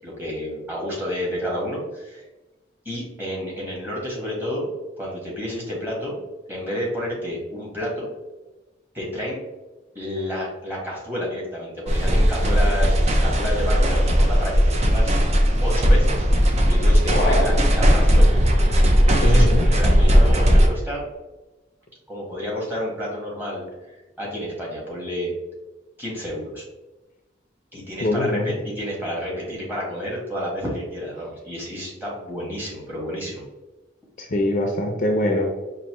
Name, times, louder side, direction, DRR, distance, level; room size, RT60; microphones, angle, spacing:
voice 1, 0.0-2.2 2.8-6.2 6.5-8.1 8.9-9.4 9.9-15.1 15.6-16.3 16.6-18.3 19.1-21.0 22.1-23.6 24.2-25.3 26.0-26.6 27.7-33.4, equal, 10° right, -5 dB, 1.4 m, -30 dB
sound 1, 11.9-20.7, equal, 35° right, 0.5 m, -17 dB
voice 2, 17.1-17.5 19.2-19.6 28.0-28.5 34.2-35.5, left 1 dB, 45° left, 2 dB, 0.5 m, -22 dB
5.2 x 2.6 x 3.0 m, 1.1 s
head